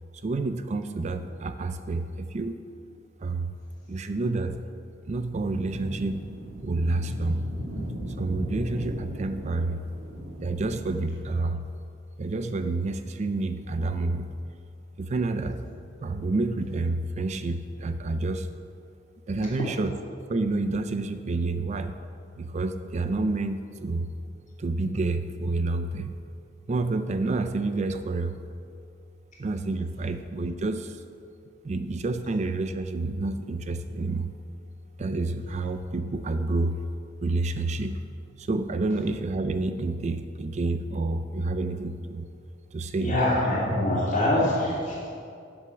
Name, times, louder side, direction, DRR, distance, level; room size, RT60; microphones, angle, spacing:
voice 1, 0.2-2.6 3.2-3.6 3.9-4.6 5.1-6.2 6.6-7.5 8.2-9.9 10.4-11.7 12.2-14.3 15.0-15.6 16.0-18.5 19.3-19.9 20.3-21.9 22.4-24.1 24.6-26.2 26.7-28.4 29.4-31.0 31.6-34.3 35.0-36.8 37.2-38.0 38.4-42.3 42.7-43.1, right 2 dB, 35° right, 9 dB, 0.4 m, -29 dB
sound 1, 5.6-11.2, right 1 dB, 85° right, 1.9 m, -37 dB
voice 2, 43.0-45.1, left 1 dB, 40° left, -6 dB, 2.8 m, -24 dB
7.9 x 7.6 x 7.0 m, 2.4 s
head